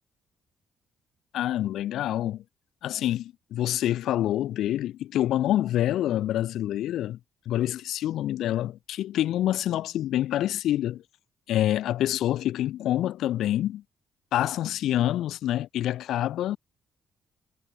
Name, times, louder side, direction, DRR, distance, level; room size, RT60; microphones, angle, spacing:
voice 1, 1.3-2.4 2.8-7.2 7.5-11.0 11.5-13.8 14.3-16.6, left 12 dB, 80° left, 4.2 m, -27 dB
cardioid pair, 90°, 0 cm